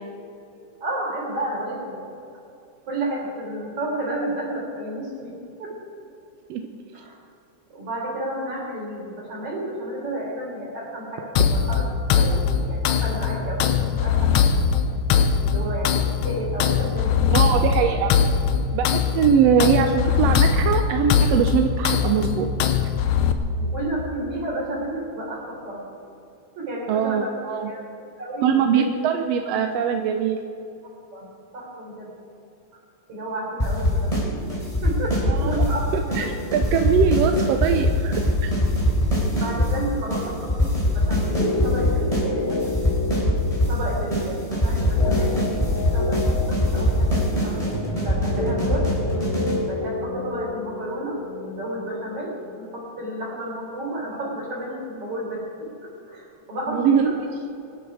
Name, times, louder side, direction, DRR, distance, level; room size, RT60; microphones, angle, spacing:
voice 1, 0.8-2.1 2.9-5.8 6.9-7.2 7.7-11.8 12.1-14.5 15.4-17.7 23.6-25.8 26.6-27.3 27.7-27.8 28.2-28.8 30.8-32.1 32.7-32.8 33.1-34.1 34.8-36.3 39.4-42.7 43.7-45.6 45.9-49.1 49.6-57.2, right 1 dB, 50° right, -2 dB, 4.7 m, -32 dB
sound 1, 11.4-23.3, left 6 dB, 80° left, 2.2 m, -21 dB
voice 2, 17.3-18.1 18.7-22.5 26.9-27.7 28.4-30.4 35.3-35.5 35.9-38.5 56.7-57.1, right 7 dB, 70° right, 5 dB, 1.7 m, -22 dB
sound 2, 33.6-34.2 34.5-35.8 36.1-36.3 36.5-39.7 40.1-40.2 40.5-42.2 42.5-43.8 44.1-44.2 44.5-49.6, equal, 10° left, 3.8 m, -22 dB
sound 3, 41.2-53.4 53.6-53.7, left 3 dB, 55° left, 1.7 m, -31 dB
23.5 x 11.0 x 4.9 m, 2.8 s
omnidirectional pair, 3.3 m